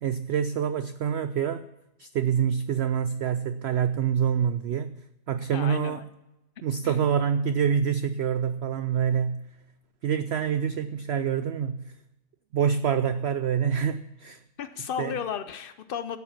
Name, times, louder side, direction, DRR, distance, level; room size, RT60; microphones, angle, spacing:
voice 1, 0.0-1.7 2.0-5.0 5.3-6.1 6.6-9.4 10.0-11.8 12.5-14.4 15.0-15.1, right 8 dB, 80° right, 12 dB, 0.5 m, -26 dB
voice 2, 5.5-6.0 6.8-7.0 14.6-16.2, left 8 dB, 90° left, 11 dB, 0.4 m, -34 dB
12.0 x 7.6 x 7.2 m, 0.95 s
omnidirectional pair, 1.6 m